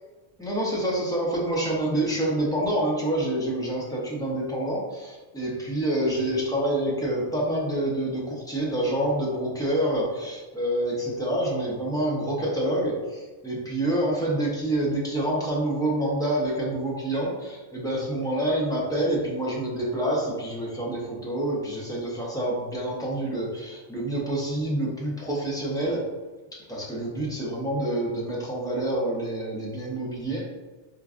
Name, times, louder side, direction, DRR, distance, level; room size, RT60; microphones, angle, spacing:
voice 1, 0.4-26.1 26.5-30.4, right 1 dB, 5° left, -5 dB, 0.6 m, -27 dB
4.5 x 2.5 x 2.4 m, 1.3 s
omnidirectional pair, 1.2 m